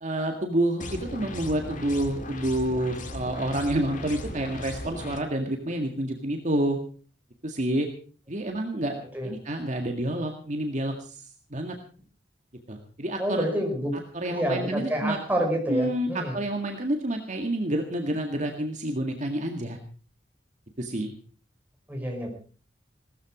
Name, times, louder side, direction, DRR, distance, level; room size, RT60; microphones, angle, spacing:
voice 1, 0.0-6.8 7.4-7.9 8.3-11.8 12.7-13.5 14.1-15.2 15.7-19.8 20.8-21.1, right 1 dB, 45° right, 3 dB, 1.9 m, -28 dB
sound 1, 0.8-5.2, left 1 dB, 45° left, 2.2 m, -37 dB
voice 2, 13.2-13.9 14.3-16.4 21.9-22.3, equal, 10° right, 1 dB, 5.1 m, -28 dB
18.0 x 14.0 x 5.0 m, 0.41 s
head